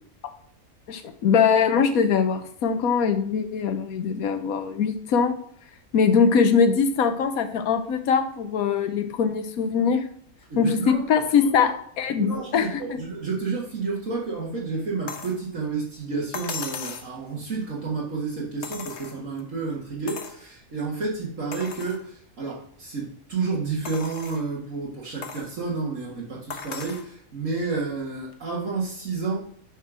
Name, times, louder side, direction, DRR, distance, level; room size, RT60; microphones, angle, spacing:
voice 1, 0.9-5.3 5.9-10.0 10.6-11.7 12.0-13.0, left 6 dB, 80° left, 8 dB, 1.3 m, -22 dB
voice 2, 10.5-11.0 11.4-11.7 12.2-29.4, right 4 dB, 65° right, -5 dB, 2.1 m, -30 dB
sound 1, 15.1-15.4 16.3-17.1 18.6-19.4 20.1-20.4 20.9-21.0 21.5-22.0 22.6-22.7 23.8-24.5 25.2-25.5 26.5-27.1 28.3-28.4, left 5 dB, 55° left, 1.3 m, -36 dB
9.9 x 4.5 x 6.2 m, 0.64 s
omnidirectional pair, 1.5 m